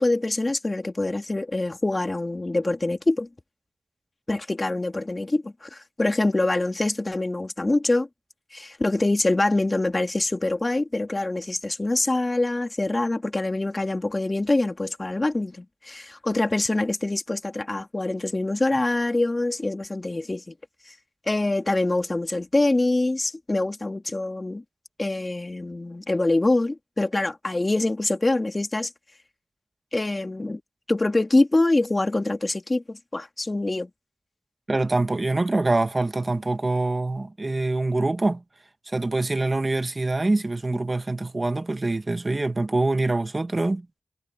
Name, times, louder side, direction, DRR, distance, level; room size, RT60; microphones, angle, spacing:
voice 1, 0.0-3.3 4.3-8.1 8.5-20.5 20.9-21.0 21.3-24.6 25.0-28.9 29.9-30.6 30.9-33.9, left 2 dB, 35° left, 2.3 m, -25 dB
voice 2, 34.7-38.4 38.9-43.9, right 2 dB, 35° right, 1.3 m, -24 dB
wide cardioid pair, 70°, 0 cm